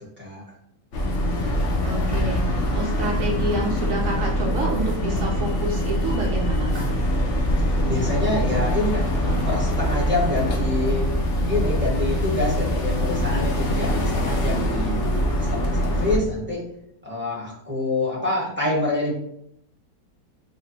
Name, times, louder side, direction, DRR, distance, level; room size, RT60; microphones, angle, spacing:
sound 1, 0.9-16.2, equal, 65° left, 0.8 m, -23 dB
voice 1, 1.8-2.4 2.7-6.9, right 2 dB, 60° right, 0 dB, 1.0 m, -28 dB
voice 2, 7.9-11.1 11.5-15.0 15.3-16.6 17.0-19.1, left 2 dB, 10° right, -6 dB, 0.9 m, -26 dB
3.6 x 2.1 x 4.0 m, 0.72 s
omnidirectional pair, 1.8 m